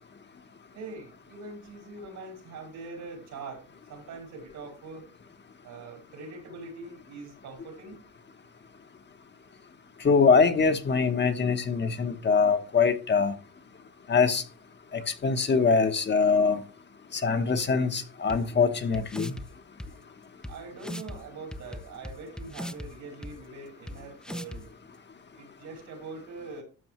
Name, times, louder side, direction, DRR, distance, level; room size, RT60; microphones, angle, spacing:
voice 1, 0.7-5.1 5.6-8.0 20.5-24.7 25.3-26.6, right 3 dB, 75° right, 4.4 m, -43 dB
voice 2, 10.0-13.3 14.1-14.4 14.9-16.6 17.1-19.3, left 5 dB, 35° left, 1.1 m, -23 dB
sound 1, 18.3-18.4 18.9-19.5 19.8-19.9 20.4-20.5 20.8-21.2 21.5-22.9 23.2-23.3 23.9-24.0 24.2-24.6, left 1 dB, 5° left, 0.6 m, -37 dB
12.5 x 6.8 x 3.1 m
cardioid pair, 90°, 30 cm